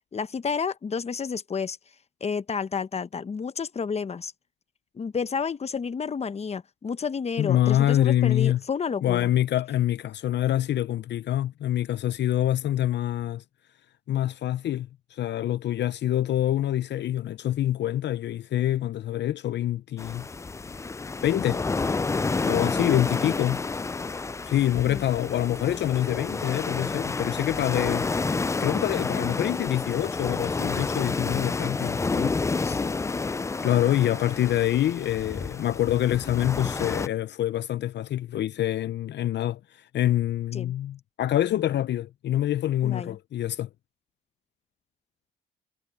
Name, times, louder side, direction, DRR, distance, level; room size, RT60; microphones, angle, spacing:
voice 1, 0.1-1.8 2.2-4.3 4.9-9.3 24.9-25.0 32.5-33.0 40.5-40.7 42.8-43.1, left 6 dB, 30° left, 0.9 m, -30 dB
voice 2, 7.4-8.6 9.0-13.4 14.1-20.3 21.2-21.6 22.4-23.6 24.4-28.3 28.6-32.4 33.6-43.7, left 12 dB, 60° left, 0.6 m, -26 dB
sound 1, 20.0-37.1, left 4 dB, 15° left, 0.4 m, -29 dB
cardioid pair, 90°, 20 cm